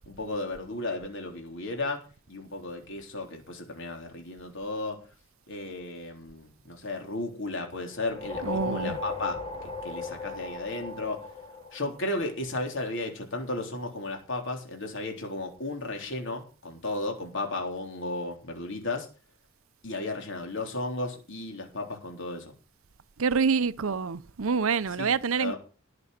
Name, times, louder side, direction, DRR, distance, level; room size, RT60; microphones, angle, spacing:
voice 1, 0.0-5.0 5.5-9.4 9.8-11.2 11.7-19.1 19.8-22.5 25.0-25.6, left 2 dB, 60° left, 3.6 m, -34 dB
sound 1, 8.0-12.6, left 3 dB, 25° left, 3.4 m, -37 dB
voice 2, 8.4-9.0 23.2-25.5, right 5 dB, 65° right, 0.6 m, -26 dB
18.0 x 6.9 x 6.5 m
head